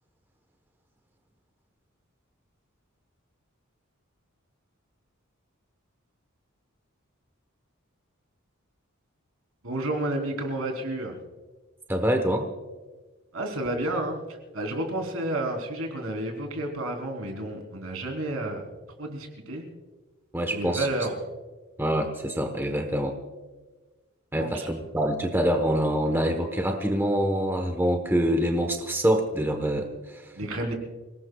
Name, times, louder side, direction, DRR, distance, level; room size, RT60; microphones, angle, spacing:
voice 1, 9.6-11.2 13.3-18.6 19.0-19.7 20.5-21.2 24.4-24.7 30.4-30.7, right 1 dB, 75° right, 2 dB, 3.6 m, -31 dB
voice 2, 11.9-12.5 20.3-20.9 21.8-23.2 24.3-30.3, equal, 10° right, 5 dB, 1.1 m, -25 dB
27.5 x 18.5 x 2.4 m, 1.3 s
head